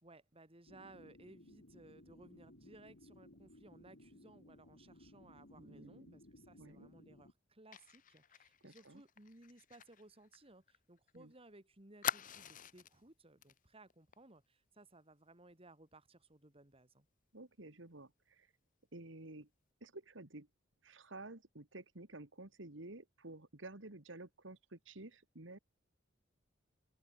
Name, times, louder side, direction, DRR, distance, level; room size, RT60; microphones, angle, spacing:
voice 1, 0.0-17.1, right 2 dB, 30° right, 3.1 m, -61 dB
sound 1, 0.7-7.3, left 1 dB, 65° left, 3.3 m, -60 dB
voice 2, 5.6-6.2 6.6-6.9 8.6-9.0 11.1-11.3 17.3-18.5 18.9-19.5 19.8-20.5 20.8-25.6, right 2 dB, 70° right, 2.3 m, -52 dB
Fire, 7.7-11.2 11.4-11.5 12.0-13.0 13.4-13.6 13.9-14.1, left 9 dB, 45° left, 0.9 m, -44 dB
open air
head